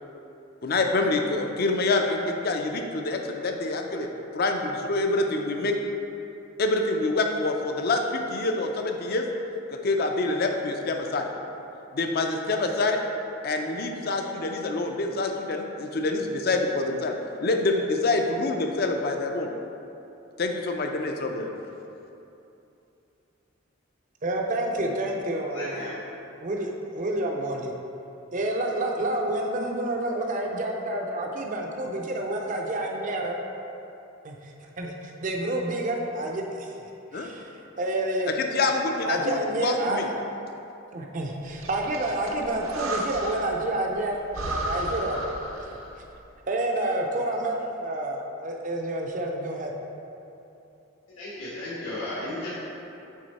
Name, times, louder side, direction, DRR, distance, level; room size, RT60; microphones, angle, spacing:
voice 1, 0.6-4.1 4.3-5.8 6.6-9.3 9.7-11.3 11.9-13.0 13.4-19.5 20.4-21.5 37.1-37.3 38.3-40.1, left 2 dB, 45° left, 4 dB, 0.4 m, -26 dB
voice 2, 24.2-25.9 26.4-27.7 28.3-33.4 34.2-36.7 37.1-37.5 37.8-38.3 39.0-40.1 40.9-45.2 46.5-49.7, right 1 dB, 35° right, 1 dB, 0.5 m, -29 dB
voice 3, 25.5-26.0 51.2-52.5, left 1 dB, 80° left, -9 dB, 1.3 m, -34 dB
Breathing, 41.4-43.6 44.0-44.1 44.3-46.0, right 1 dB, 70° right, 0.7 m, -33 dB
6.3 x 3.9 x 4.1 m, 2.9 s
head